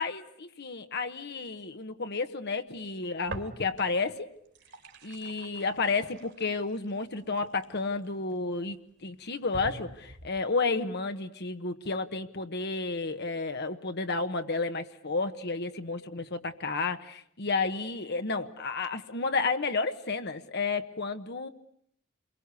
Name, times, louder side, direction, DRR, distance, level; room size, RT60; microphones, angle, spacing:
voice 1, 0.0-4.3 5.0-8.8 9.0-21.5, left 4 dB, 55° left, 8 dB, 1.2 m, -31 dB
sound 1, 3.3-4.0 4.4-8.3 8.9-9.0 9.5-10.4, right 2 dB, 55° right, 2.8 m, -45 dB
28.5 x 22.5 x 8.3 m, 0.68 s
head